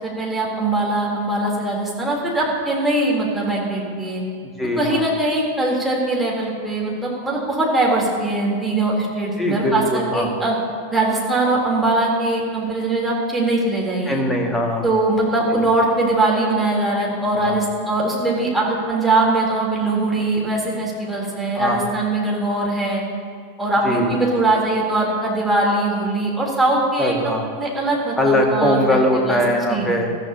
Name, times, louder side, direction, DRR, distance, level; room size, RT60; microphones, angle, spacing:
voice 1, 0.0-4.2 4.8-10.5 10.9-14.2 14.8-23.0 23.6-29.0 29.2-29.4 29.7-29.9, right 2 dB, 5° right, -4 dB, 3.5 m, -21 dB
voice 2, 4.6-5.0 9.4-10.3 14.1-14.8 15.5-15.6 17.4-17.6 21.6-21.8 23.8-24.1 27.0-27.4 28.2-30.2, left 1 dB, 10° left, 1 dB, 1.9 m, -21 dB
21.0 x 14.0 x 2.9 m, 2.1 s
figure-of-eight pair, 90°, 0 cm